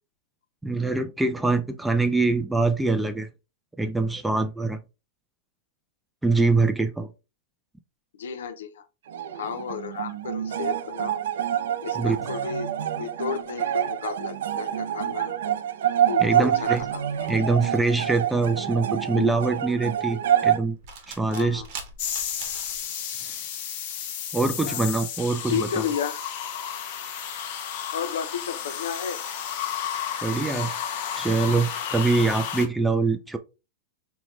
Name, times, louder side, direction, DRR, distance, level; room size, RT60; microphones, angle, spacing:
voice 1, 0.6-3.3 3.8-4.8 6.2-7.1 11.9-12.2 16.2-16.8 17.3-20.8 21.1-21.6 23.3-23.4 24.3-25.8 30.2-30.8 31.1-33.4, right 3 dB, 5° right, 0.3 m, -24 dB
voice 2, 8.1-8.9 9.3-11.2 11.8-15.4 16.1-17.0 19.2-19.3 21.3-21.7 24.7-24.8 25.4-26.2 27.9-29.2, left 7 dB, 85° left, 0.6 m, -32 dB
sound 1, 9.1-20.6, right 10 dB, 75° right, 0.4 m, -27 dB
sound 2, 16.4-22.8, right 5 dB, 50° right, 0.9 m, -44 dB
sound 3, 22.0-32.7, left 9 dB, 50° left, 0.8 m, -32 dB
4.3 x 2.2 x 3.1 m
supercardioid pair, 145°, 0 cm